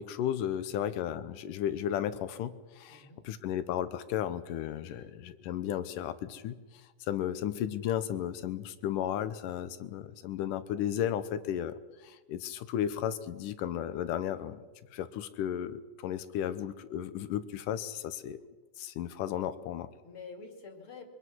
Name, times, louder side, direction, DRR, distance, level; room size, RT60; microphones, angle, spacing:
voice 1, 0.0-6.6 7.1-14.6 14.9-18.4 18.8-19.9, left 10 dB, 85° left, 13 dB, 2.5 m, -34 dB
voice 2, 0.5-0.9 2.9-3.2 4.9-5.1 20.0-21.1, left 4 dB, 40° left, 4 dB, 3.1 m, -48 dB
23.5 x 23.0 x 6.3 m, 1.3 s
omnidirectional pair, 3.7 m